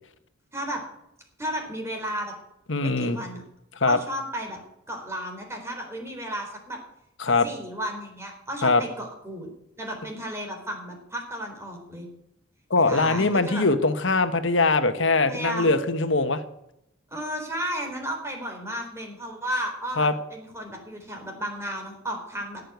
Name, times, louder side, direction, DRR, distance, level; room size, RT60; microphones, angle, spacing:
voice 1, 1.4-2.3 2.8-3.4 3.9-4.6 4.9-6.8 7.4-9.5 9.8-12.1 12.8-13.6 15.3-15.7 17.1-22.6, equal, 15° right, 2 dB, 4.0 m, -33 dB
voice 2, 2.7-3.2 3.8-4.0 7.2-7.5 8.6-8.8 12.7-16.4 20.0-20.1, left 3 dB, 70° left, 10 dB, 1.3 m, -22 dB
17.5 x 6.7 x 9.4 m, 0.82 s
head